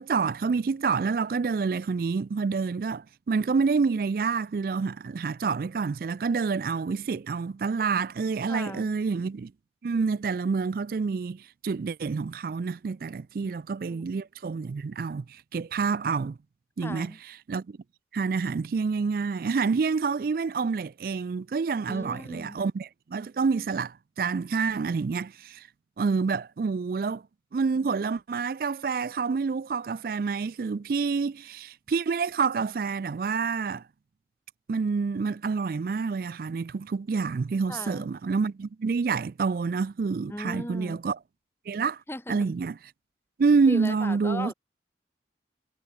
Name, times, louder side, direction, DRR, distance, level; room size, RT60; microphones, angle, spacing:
voice 1, 0.0-9.5 9.8-16.4 16.8-17.8 18.1-25.7 26.0-27.2 27.5-33.8 34.7-41.2 41.7-42.0 42.3-42.8 43.4-44.5, right 5 dB, 55° right, 0.4 m, -28 dB
voice 2, 8.5-9.0 13.4-13.5 13.9-14.0 16.8-17.2 21.9-22.6 37.7-38.1 40.3-41.0 42.1-42.5 43.7-44.5, left 1 dB, 15° left, 1.2 m, -38 dB
head